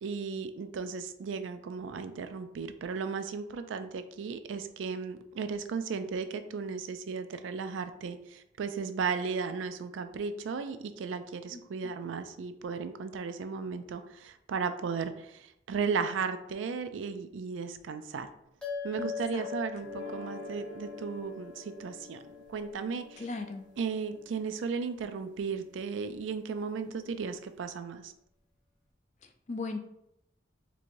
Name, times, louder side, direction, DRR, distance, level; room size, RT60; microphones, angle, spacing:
voice 1, 0.0-18.3 18.8-22.2 22.5-23.3 23.8-28.1, right 5 dB, 90° right, 9 dB, 0.4 m, -35 dB
voice 2, 11.5-11.9 19.3-19.4 23.2-23.6 29.5-29.8, left 3 dB, 40° left, 5 dB, 0.4 m, -37 dB
sound 1, 18.6-23.3, left 6 dB, 5° left, 0.7 m, -42 dB
sound 2, 19.8-25.9, left 2 dB, 70° right, 0.8 m, -49 dB
4.5 x 2.8 x 2.6 m, 0.78 s
head